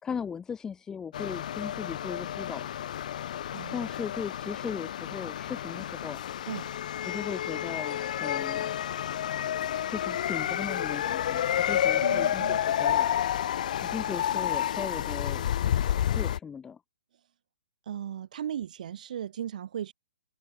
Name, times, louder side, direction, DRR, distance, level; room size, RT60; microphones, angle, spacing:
voice 1, 0.0-2.7 3.7-6.2 7.0-8.7 9.9-13.2 13.8-15.4 16.0-16.8, left 6 dB, 10° left, 5.6 m, -38 dB
sound 1, 1.1-16.4, left 10 dB, 55° left, 1.0 m, -30 dB
voice 2, 3.5-3.9 6.5-6.7 12.0-12.6 14.0-14.1 14.3-14.4 17.9-19.9, right 10 dB, 55° right, 4.0 m, -37 dB
open air
hypercardioid pair, 135°, 5 cm